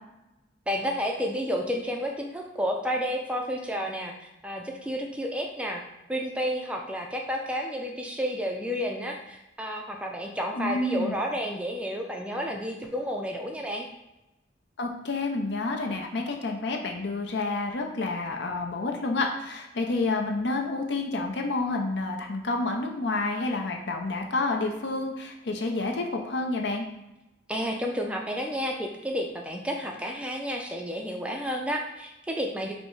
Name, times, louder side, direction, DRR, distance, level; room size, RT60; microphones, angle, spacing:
voice 1, 0.7-5.8 6.1-13.9 27.5-32.7, equal, 5° right, 1 dB, 0.4 m, -31 dB
voice 2, 10.5-11.2 14.8-26.9, left 2 dB, 65° left, 2 dB, 0.6 m, -29 dB
5.1 x 2.1 x 4.6 m, 0.96 s
head